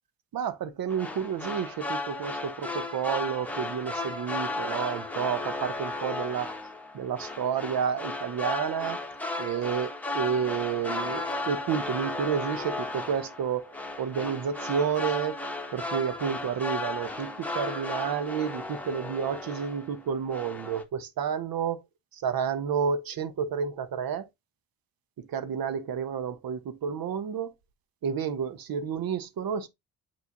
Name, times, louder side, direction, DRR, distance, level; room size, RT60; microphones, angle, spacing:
voice 1, 0.3-6.5 6.9-9.1 9.4-13.7 14.0-15.4 15.7-21.8 22.1-24.3 25.2-27.5 28.0-29.7, right 7 dB, 55° right, 1.1 m, -30 dB
sound 1, 0.9-20.0 20.3-20.8, left 2 dB, 5° left, 1.6 m, -35 dB
8.2 x 3.2 x 4.1 m
hypercardioid pair, 50°, 42 cm